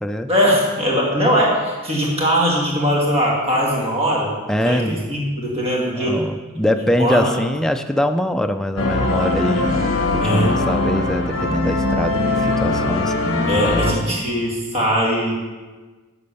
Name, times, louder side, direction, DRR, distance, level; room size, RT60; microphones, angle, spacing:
voice 1, 0.3-4.3 4.6-6.2 7.0-7.4 10.2-10.5 13.5-15.3, equal, 30° right, -3 dB, 2.1 m, -20 dB
voice 2, 4.5-5.1 6.0-9.9 10.1-13.1 13.6-14.2, left 1 dB, ahead, 7 dB, 0.3 m, -23 dB
sound 1, 8.8-13.9, left 2 dB, 65° left, 1.0 m, -21 dB
10.5 x 4.2 x 6.9 m, 1.3 s
head